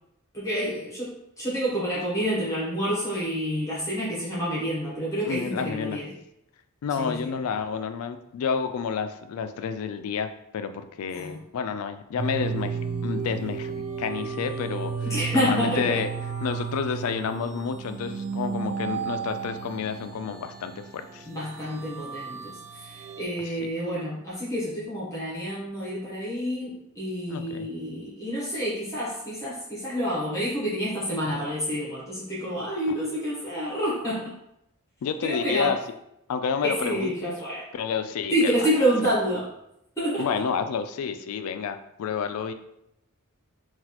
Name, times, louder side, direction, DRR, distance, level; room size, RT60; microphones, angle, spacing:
voice 1, 0.3-6.1 7.0-7.3 11.1-11.3 15.0-15.9 21.2-34.3 35.2-35.7 36.6-37.7 38.3-39.5 40.0-40.4, equal, 15° left, -7 dB, 0.8 m, -28 dB
voice 2, 5.2-6.0 6.8-16.1 16.4-21.3 23.4-23.7 27.3-27.7 35.0-35.8 36.3-37.4 37.7-38.7 40.2-42.5, left 6 dB, 80° left, 9 dB, 0.3 m, -30 dB
sound 1, 12.2-23.2, right 6 dB, 35° right, 0.4 m, -33 dB
4.0 x 2.4 x 2.8 m, 0.82 s
head